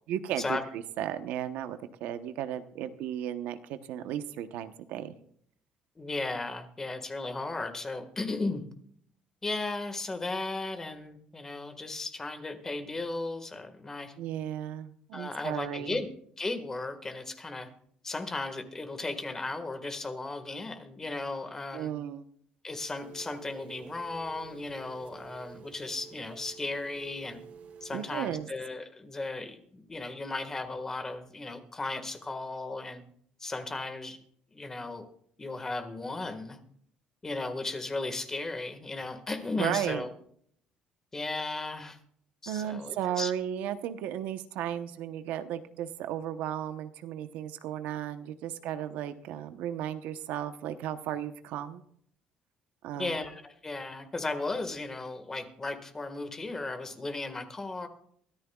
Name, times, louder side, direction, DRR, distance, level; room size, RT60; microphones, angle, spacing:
voice 1, 0.1-5.1 14.2-16.0 21.7-22.3 27.9-28.5 39.6-40.0 42.5-51.8 52.8-53.2, right 10 dB, 85° right, 10 dB, 1.0 m, -35 dB
voice 2, 6.0-8.6 9.4-14.1 15.1-16.1 16.4-17.7 18.0-21.9 22.6-27.4 27.8-33.0 33.4-34.2 34.5-35.0 35.4-36.6 37.2-40.1 41.1-42.0 42.4-43.3 52.9-57.9, left 3 dB, 15° left, 7 dB, 1.7 m, -35 dB
Telephone, 23.0-28.2, right 6 dB, 65° right, 3.4 m, -49 dB
23.5 x 13.5 x 2.4 m, 0.63 s
cardioid pair, 145°, 3 cm